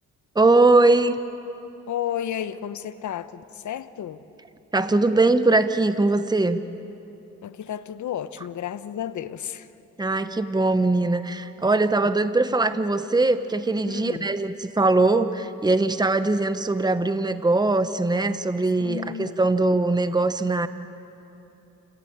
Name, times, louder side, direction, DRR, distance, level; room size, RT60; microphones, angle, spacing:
voice 1, 0.3-1.2 4.7-6.6 10.0-20.7, right 2 dB, 15° right, 11 dB, 1.1 m, -21 dB
voice 2, 1.9-4.2 7.4-9.7 13.9-14.3 18.8-19.4, left 10 dB, 65° left, 13 dB, 1.0 m, -32 dB
29.0 x 16.0 x 8.8 m, 2.9 s
cardioid pair, 70°, 32 cm